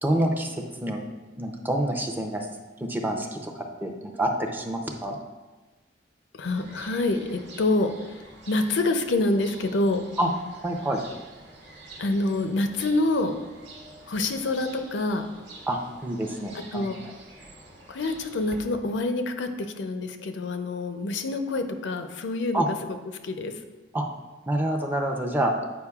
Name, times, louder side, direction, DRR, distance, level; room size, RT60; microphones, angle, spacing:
voice 1, 0.0-1.0 1.4-2.5 2.8-5.2 10.2-10.3 10.6-11.0 15.7-16.9 22.5-22.7 23.9-24.1 24.5-25.5, right 1 dB, 10° right, 1 dB, 0.5 m, -27 dB
voice 2, 6.3-8.2 8.5-10.0 12.0-13.3 14.1-15.3 16.7-17.0 17.9-19.5 19.8-22.6 23.2-23.5, left 2 dB, 75° left, 7 dB, 0.5 m, -26 dB
sound 1, 6.4-18.6, right 2 dB, 70° right, 1.1 m, -47 dB
8.2 x 5.0 x 2.3 m, 1.2 s
head